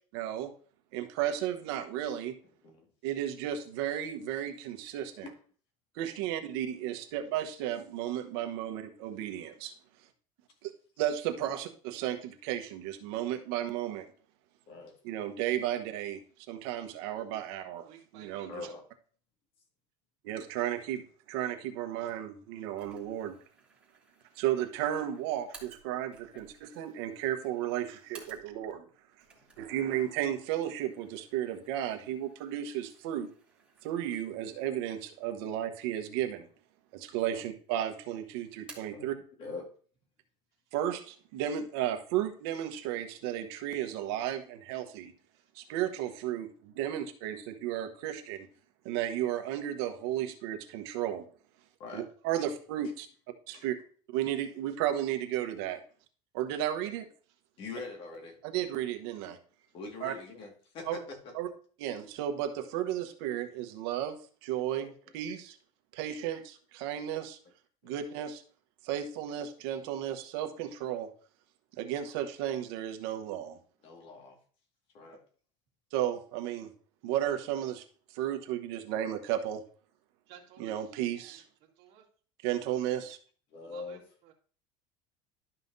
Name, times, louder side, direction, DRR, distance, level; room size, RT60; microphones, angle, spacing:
voice 1, 0.1-0.5 0.9-2.3 3.0-5.3 6.0-9.7 10.6-10.7 11.0-14.1 15.0-16.2 16.5-17.9 18.1-18.6 20.2-21.0 21.3-23.3 24.4-28.8 29.6-33.3 33.8-36.5 36.9-39.1 40.7-45.1 45.5-48.4 48.8-51.2 51.9-53.1 53.5-53.8 54.1-55.8 56.3-57.1 58.4-59.4 60.0-60.1 60.9-61.0 61.3-61.5 61.8-65.6 65.9-67.4 67.8-68.4 68.8-71.1 71.8-73.6 75.9-76.7 77.0-77.8 78.1-79.6 80.6-81.4 82.4-83.2, right 11 dB, 80° right, 6 dB, 1.2 m, -34 dB
voice 2, 17.8-18.8 45.3-45.5 46.0-46.1 80.3-80.8 81.2-82.0 83.6-84.3, right 9 dB, 55° right, 1 dB, 2.0 m, -56 dB
voice 3, 18.5-18.8 26.3-26.4 29.3-29.7 37.3-37.4 38.9-39.7 51.8-52.0 53.5-53.7 57.6-58.4 59.7-61.3 64.8-64.9 66.1-66.3 67.8-67.9 73.8-74.4 74.9-75.2 83.5-84.0, left 3 dB, 45° left, 2 dB, 2.1 m, -44 dB
sound 1, 22.8-28.8 29.1-34.6 35.0-35.1 35.9-36.6 36.9-37.7 38.0-39.1, right 3 dB, 5° right, 2.3 m, -58 dB
12.0 x 5.7 x 2.7 m, 0.43 s
cardioid pair, 155°, 13 cm